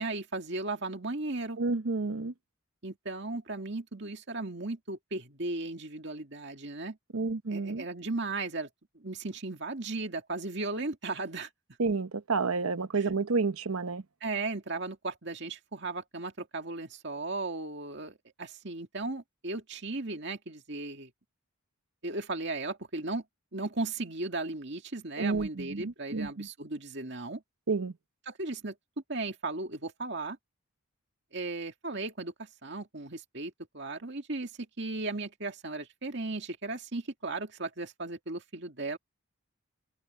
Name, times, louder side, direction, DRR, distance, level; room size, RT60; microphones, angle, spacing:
voice 1, 0.0-1.6 2.8-7.0 7.5-8.7 8.9-11.5 12.9-13.1 14.2-21.1 22.0-23.2 23.5-27.4 28.3-28.7 29.1-30.4 31.3-34.5 34.8-39.0, right 3 dB, 55° right, 2.3 m, -36 dB
voice 2, 1.6-2.3 7.1-7.8 11.8-14.0 25.2-26.5 27.7-27.9, right 4 dB, 85° right, 0.9 m, -30 dB
open air
head